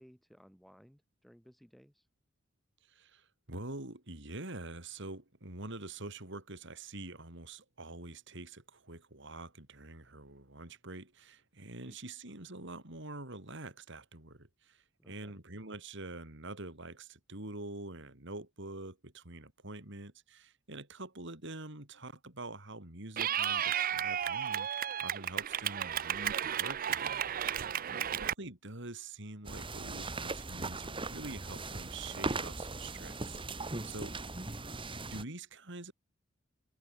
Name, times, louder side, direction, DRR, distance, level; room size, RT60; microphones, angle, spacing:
voice 1, 0.0-2.1 11.8-12.0 15.0-15.4 27.9-28.2 34.4-34.6, equal, ahead, 7.0 m, -59 dB
voice 2, 2.8-27.3 27.9-34.1 34.9-35.9, right 2 dB, 65° right, 4.2 m, -46 dB
Clapping / Cheering, 23.2-28.3, right 9 dB, 45° right, 0.5 m, -33 dB
sound 1, 29.5-35.2, right 3 dB, 25° right, 2.3 m, -39 dB
head